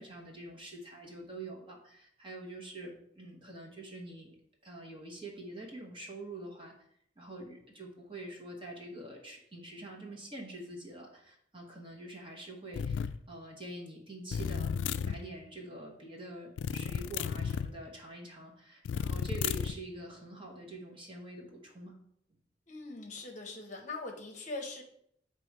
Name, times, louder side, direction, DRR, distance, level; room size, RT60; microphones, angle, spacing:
voice 1, 0.0-6.7 7.2-14.7 15.0-22.0, right 1 dB, 30° right, 0 dB, 1.1 m, -46 dB
sound 1, 12.7-13.2 14.3-15.2 16.6-17.7 18.8-19.8, left 7 dB, 90° left, 0.3 m, -33 dB
voice 2, 22.7-24.8, left 3 dB, 45° left, 3 dB, 0.8 m, -41 dB
7.7 x 3.1 x 4.6 m, 0.70 s
head